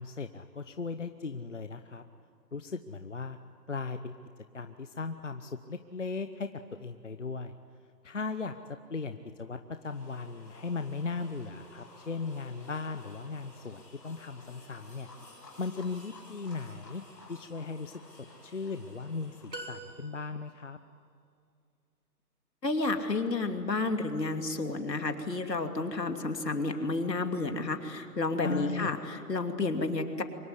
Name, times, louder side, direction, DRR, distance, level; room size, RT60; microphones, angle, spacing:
voice 1, 0.0-2.0 2.5-3.4 3.7-4.1 4.5-7.5 8.0-8.5 8.9-15.1 15.6-17.0 17.3-20.8 28.4-28.9, left 4 dB, 45° left, 8 dB, 0.9 m, -37 dB
sound 1, 9.8-19.9, left 2 dB, 5° left, 2.3 m, -53 dB
sound 2, 19.5-20.6, right 1 dB, 80° right, 3.6 m, -44 dB
voice 2, 22.6-30.2, left 3 dB, 75° left, 6 dB, 2.9 m, -31 dB
24.5 x 21.5 x 9.8 m, 2.4 s
hypercardioid pair, 175°, 49 cm